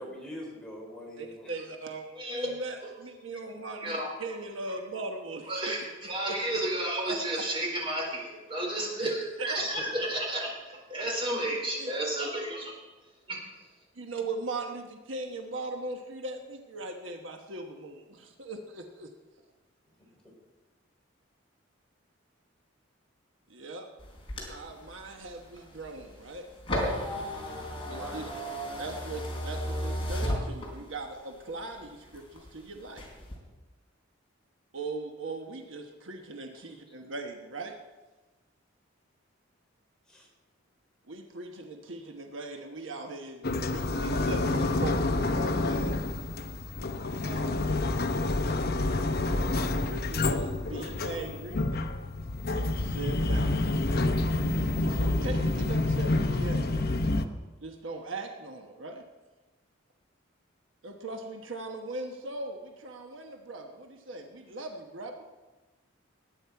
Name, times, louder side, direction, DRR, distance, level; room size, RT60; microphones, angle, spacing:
voice 1, 0.0-1.5 9.8-10.1 20.2-20.3 27.9-28.2 36.6-36.7 40.1-40.3, left 1 dB, 5° left, -2 dB, 3.6 m, -43 dB
voice 2, 1.2-5.8 6.3-6.4 7.0-7.4 9.0-9.1 9.4-9.6 11.8-11.9 13.9-19.1 23.5-23.9 24.4-26.5 27.9-28.3 28.8-33.0 34.7-37.7 41.1-46.0 47.2-47.6 49.7-51.7 52.6-53.5 54.8-56.9 57.6-59.0 60.8-65.2, right 2 dB, 75° right, 4 dB, 1.2 m, -39 dB
voice 3, 2.1-2.5 3.8-4.1 5.5-12.7 13.3-13.4, right 1 dB, 25° right, -1 dB, 4.2 m, -32 dB
sound 1, 24.0-31.1 31.5-32.5 32.9-33.3, equal, 25° left, 3.8 m, -34 dB
sound 2, 43.4-57.2, left 2 dB, 50° left, 0.8 m, -28 dB
20.0 x 9.2 x 4.7 m, 1.2 s
head